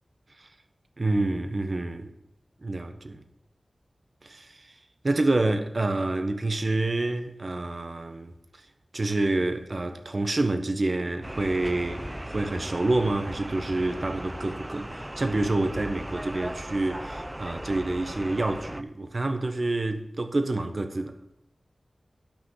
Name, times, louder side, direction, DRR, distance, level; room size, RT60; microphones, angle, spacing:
voice 1, 1.0-2.1 2.6-3.2 4.2-4.7 5.0-8.7 8.9-21.2, right 2 dB, 50° right, 1.2 m, -28 dB
sound 1, 11.2-18.8, right 1 dB, 15° right, 0.5 m, -37 dB
12.0 x 5.9 x 5.7 m
wide cardioid pair, 65°, 0 cm